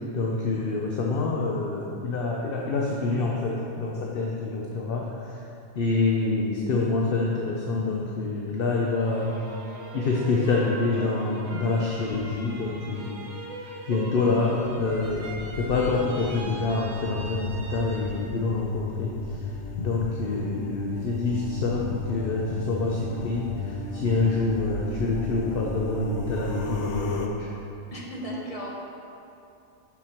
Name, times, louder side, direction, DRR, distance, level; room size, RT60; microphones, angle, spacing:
voice 1, 0.1-5.1 5.7-9.3 9.9-13.2 13.9-15.3 15.5-19.1 19.8-27.5, left 3 dB, 55° left, -2 dB, 0.9 m, -26 dB
sound 1, 8.7-18.5 18.9-19.6, right 2 dB, 85° right, 1.3 m, -41 dB
sound 2, 14.6-27.3, left 3 dB, 80° left, 1.0 m, -34 dB
voice 2, 20.2-20.5 27.9-28.7, equal, 30° left, -4 dB, 1.3 m, -36 dB
7.1 x 6.7 x 4.4 m, 2.6 s
omnidirectional pair, 1.2 m